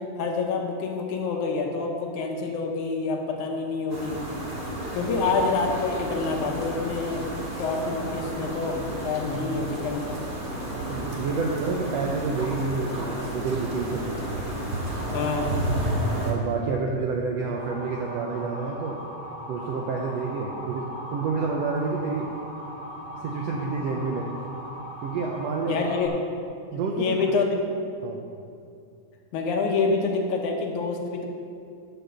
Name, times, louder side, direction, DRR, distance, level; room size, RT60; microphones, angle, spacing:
voice 1, 0.2-4.2 4.9-7.3 7.5-10.2 15.1-15.6 25.7-26.1 27.0-27.6 29.3-31.3, left 4 dB, 70° left, 1 dB, 2.3 m, -27 dB
sound 1, 3.9-16.3, right 1 dB, 35° right, 2.2 m, -32 dB
voice 2, 10.7-14.2 16.2-19.0 19.5-20.8 21.1-22.2 23.2-24.3 25.0-25.8 26.7-27.3 28.0-28.2, right 4 dB, 80° right, 0 dB, 1.5 m, -29 dB
Motor vehicle (road) / Siren, 17.5-26.1, equal, 25° left, 0.9 m, -39 dB
10.5 x 6.3 x 6.8 m, 2.5 s
omnidirectional pair, 3.8 m